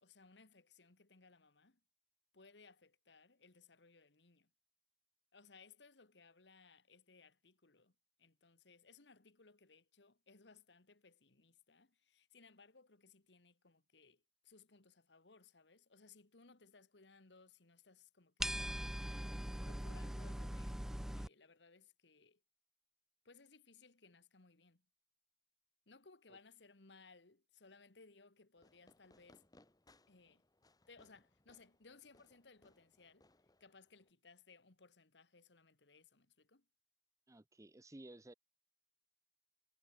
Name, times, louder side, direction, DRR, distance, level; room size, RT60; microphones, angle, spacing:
voice 1, 0.0-1.8 2.3-4.5 5.3-18.7 19.0-19.3 19.6-20.9 21.1-22.4 23.3-24.8 25.9-29.5 30.1-30.4 30.9-33.3 33.6-36.6, left 4 dB, 75° left, 1.7 m, -64 dB
sound 1, 18.4-21.3, equal, 5° right, 0.4 m, -41 dB
Fireworks, 28.6-34.1, left 1 dB, 20° left, 2.0 m, -70 dB
voice 2, 37.3-38.3, right 1 dB, 20° right, 0.8 m, -55 dB
head